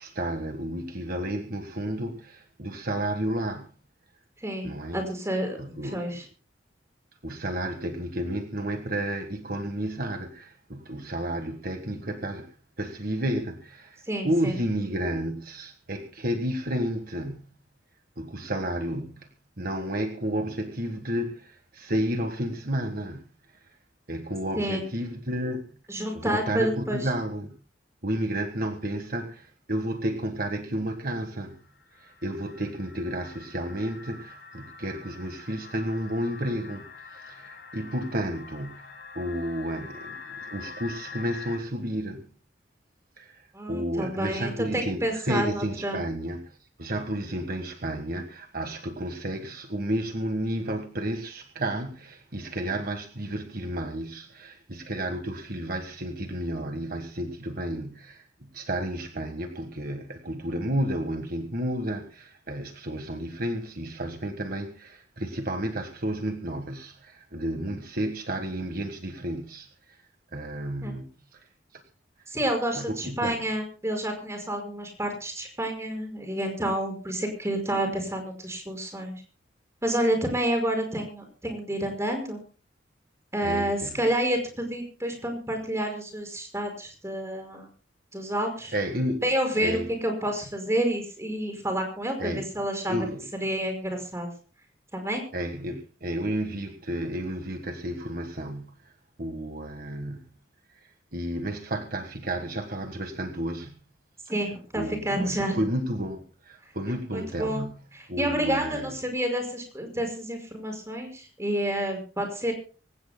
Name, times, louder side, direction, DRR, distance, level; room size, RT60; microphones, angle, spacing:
voice 1, 0.0-3.7 4.6-5.0 5.6-6.2 7.2-17.5 18.2-19.3 19.6-23.3 24.1-25.7 26.1-27.5 28.0-31.7 32.0-38.9 39.1-42.3 43.2-70.0 70.3-71.5 71.7-71.8 72.7-73.4 83.4-84.0 88.7-89.2 89.6-89.9 92.2-92.5 92.9-93.2 95.3-98.9 99.2-100.3 100.8-103.8 104.7-107.8 108.1-108.9, right 1 dB, 50° right, 1.5 m, -32 dB
voice 2, 4.4-5.6 5.8-6.2 14.1-14.6 24.5-24.8 25.9-27.1 43.5-46.0 70.8-70.9 72.3-79.2 79.8-82.4 83.3-87.7 88.1-88.7 89.2-93.1 93.4-94.3 94.9-95.2 104.3-105.6 107.1-107.6 107.9-112.5, right 1 dB, 15° right, 5.5 m, -29 dB
sound 1, 31.5-41.6, left 5 dB, 60° left, 4.7 m, -45 dB
25.5 x 16.0 x 2.2 m
head